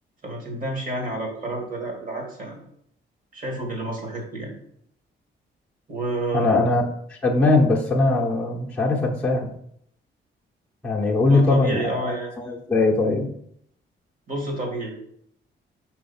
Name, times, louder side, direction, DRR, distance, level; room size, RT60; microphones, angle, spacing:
voice 1, 0.2-2.7 3.3-4.5 5.9-6.7 11.3-12.5 14.3-14.9, right 2 dB, 40° right, 1 dB, 2.3 m, -30 dB
voice 2, 6.3-6.8 7.2-9.5 10.8-11.8 12.4-13.3, left 2 dB, 5° left, -4 dB, 1.1 m, -20 dB
5.7 x 4.4 x 4.4 m, 0.70 s
cardioid pair, 120°, 20 cm